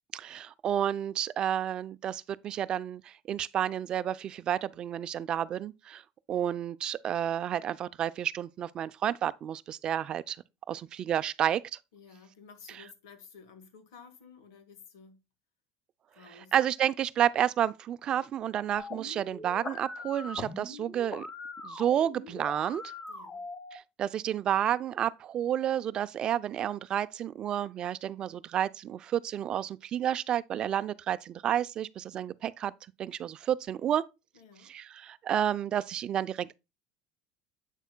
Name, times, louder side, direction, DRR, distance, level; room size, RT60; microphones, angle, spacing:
voice 1, 0.1-6.0 6.3-10.4 10.7-11.8 16.4-21.3 21.6-22.8 23.7-32.7 33.0-34.0 34.6-36.5, right 10 dB, 40° right, 0.4 m, -30 dB
voice 2, 11.9-15.2 16.1-16.5 23.1-23.4 34.3-34.7, left 5 dB, 85° left, 1.6 m, -53 dB
sound 1, 18.8-23.8, left 3 dB, 25° left, 1.3 m, -42 dB
8.1 x 6.4 x 2.2 m
supercardioid pair, 110°, 2 cm